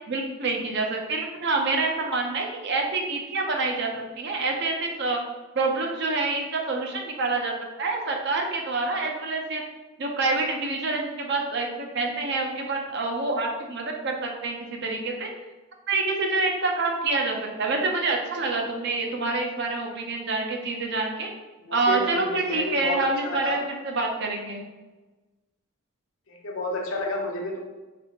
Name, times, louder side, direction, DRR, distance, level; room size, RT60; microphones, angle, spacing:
voice 1, 0.1-3.9 4.2-5.2 5.5-9.6 10.0-15.3 15.9-21.3 21.7-24.6, right 3 dB, 50° right, 1 dB, 0.6 m, -27 dB
voice 2, 21.6-23.6 26.3-27.6, left 1 dB, 70° left, 0 dB, 0.8 m, -31 dB
4.2 x 3.3 x 2.9 m, 1.2 s
head